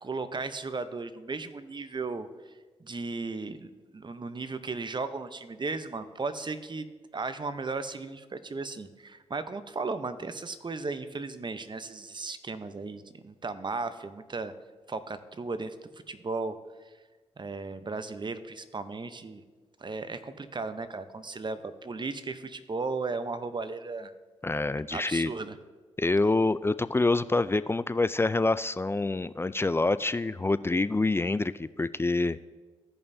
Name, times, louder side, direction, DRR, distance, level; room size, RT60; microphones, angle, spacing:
voice 1, 0.0-2.3 2.8-6.9 7.1-14.5 14.9-15.8 16.1-16.6 17.4-19.4 19.8-24.1 24.9-25.6, right 3 dB, 40° right, 11 dB, 0.8 m, -35 dB
voice 2, 24.4-25.3 26.0-32.4, left 2 dB, 20° left, 15 dB, 0.3 m, -26 dB
15.5 x 5.5 x 2.7 m, 1.3 s
supercardioid pair, 40°, 13 cm